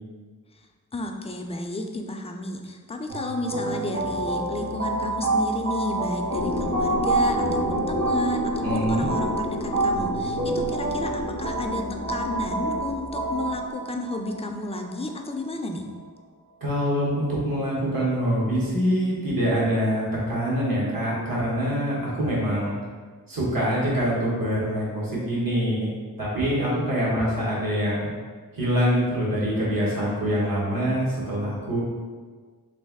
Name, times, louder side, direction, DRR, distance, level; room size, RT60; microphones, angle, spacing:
voice 1, 0.9-11.8 12.1-15.9, left 2 dB, 20° left, 3 dB, 0.3 m, -32 dB
sound 1, 3.1-16.1, right 2 dB, 55° right, 1.4 m, -28 dB
sound 2, 6.3-13.7, left 2 dB, 80° left, 0.5 m, -32 dB
voice 2, 8.6-9.1 16.6-22.7 23.3-25.9 26.2-28.1 28.5-31.8, equal, 70° right, -6 dB, 1.2 m, -25 dB
3.2 x 2.6 x 3.5 m, 1.5 s
wide cardioid pair, 55°, 36 cm